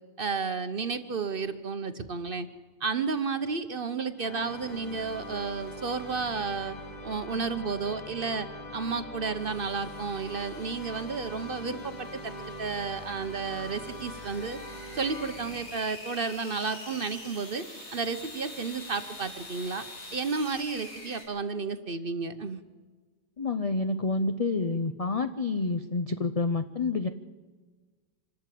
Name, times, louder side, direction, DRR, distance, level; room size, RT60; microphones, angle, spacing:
voice 1, 0.2-2.5 2.8-6.8 7.0-8.5 8.7-12.3 12.6-14.6 14.9-17.6 17.9-19.8 20.1-22.6, right 4 dB, 45° right, 10 dB, 0.9 m, -32 dB
sound 1, 4.2-16.1, left 1 dB, 30° left, 1.4 m, -42 dB
sound 2, 4.3-6.8 9.3-21.2, left 1 dB, 90° left, 5.7 m, -47 dB
voice 2, 23.4-27.1, left 3 dB, 55° left, 9 dB, 0.4 m, -28 dB
26.0 x 12.5 x 8.4 m, 1.4 s
omnidirectional pair, 1.6 m